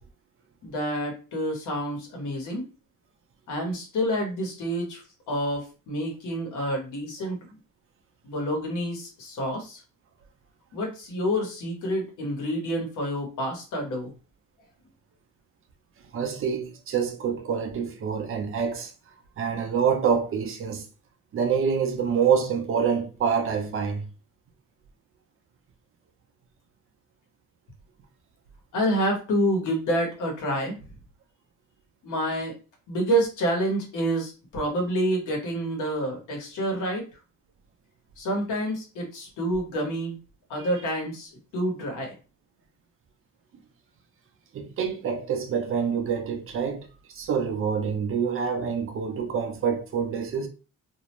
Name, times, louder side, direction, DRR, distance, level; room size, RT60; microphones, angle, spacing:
voice 1, 0.6-2.7 3.5-7.6 8.2-9.8 10.7-14.1 28.7-30.7 32.0-32.5 32.9-37.0 38.2-40.2 40.5-42.1, equal, 70° left, 1.1 m, -28 dB
voice 2, 16.1-18.9 19.4-20.8 21.3-24.0 44.5-46.9 47.2-50.5, right 6 dB, 40° right, 0.5 m, -26 dB
2.5 x 2.0 x 3.0 m
cardioid pair, 130°, 32 cm